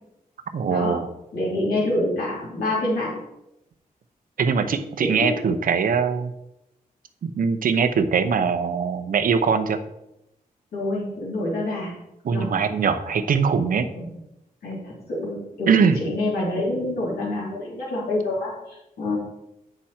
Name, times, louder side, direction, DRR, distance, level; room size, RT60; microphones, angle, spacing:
voice 1, 0.5-1.1 4.4-6.3 7.2-9.8 12.2-13.9 15.7-16.0, right 6 dB, 65° right, 7 dB, 0.8 m, -22 dB
voice 2, 1.3-3.2 5.0-5.4 10.7-11.9 12.3-12.5 13.9-14.1 14.6-19.2, left 1 dB, 90° left, -6 dB, 3.4 m, -27 dB
8.9 x 6.1 x 4.4 m, 0.88 s
wide cardioid pair, 110°, 15 cm